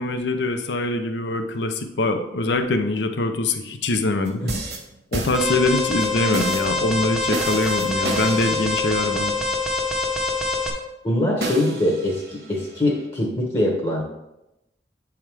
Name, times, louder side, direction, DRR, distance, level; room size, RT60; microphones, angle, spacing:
voice 1, 0.0-4.4 5.1-9.4, left 2 dB, 65° left, 7 dB, 0.6 m, -23 dB
sound 1, 4.2-5.8 6.3-6.7 7.3-9.2 11.4-13.0, right 2 dB, 55° right, 1.3 m, -31 dB
Alarm, 5.3-10.7, left 3 dB, ahead, 0.8 m, -25 dB
voice 2, 11.0-14.0, left 1 dB, 30° left, -2 dB, 1.0 m, -23 dB
8.6 x 3.6 x 4.7 m, 0.91 s
head